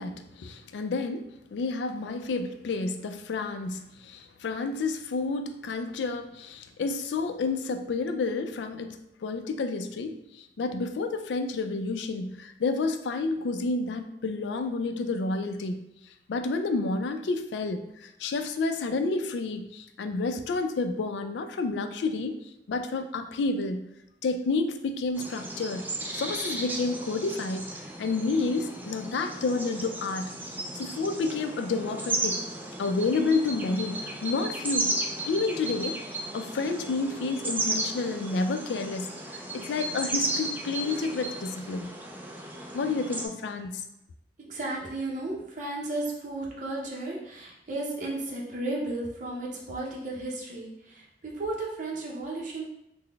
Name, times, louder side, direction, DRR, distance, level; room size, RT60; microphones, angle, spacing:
voice 1, 0.0-15.8 16.3-22.4 22.7-23.8 24.2-25.8 26.1-27.7 28.0-30.3 30.7-32.4 32.8-34.9 35.3-36.0 36.3-41.9 42.7-43.8, left 3 dB, 75° left, 8 dB, 0.3 m, -30 dB
sound 1, 25.2-43.3, right 2 dB, 10° right, 0.3 m, -34 dB
voice 2, 44.4-52.7, right 2 dB, 45° right, -3 dB, 0.6 m, -34 dB
3.8 x 2.1 x 3.4 m, 0.84 s
head